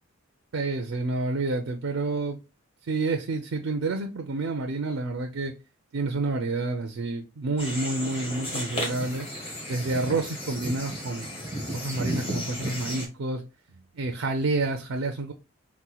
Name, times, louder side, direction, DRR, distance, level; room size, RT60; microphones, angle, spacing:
voice 1, 0.5-2.4 2.9-5.5 5.9-9.3 9.7-11.3 11.7-13.4 13.9-15.3, right 3 dB, 60° right, 0.4 m, -29 dB
sound 1, 7.6-13.1, equal, 25° left, 0.9 m, -34 dB
4.2 x 2.1 x 2.2 m
head